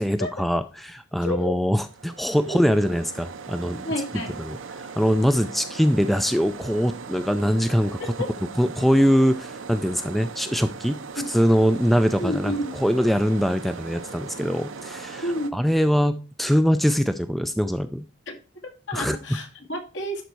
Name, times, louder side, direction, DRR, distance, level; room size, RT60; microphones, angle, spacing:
voice 1, 0.0-3.8 4.4-8.0 8.6-11.0 11.3-15.2 15.5-18.0 18.9-19.2, equal, ahead, 10 dB, 0.3 m, -22 dB
voice 2, 1.2-1.7 2.5-3.0 3.8-4.4 8.0-8.3 11.2-11.3 12.2-12.7 15.2-15.5 18.3-18.4 18.6-20.2, left 1 dB, 70° left, 1 dB, 2.1 m, -30 dB
sound 1, 1.9-15.5, right 5 dB, 85° right, 0.8 m, -39 dB
11.0 x 4.1 x 4.6 m, 0.34 s
head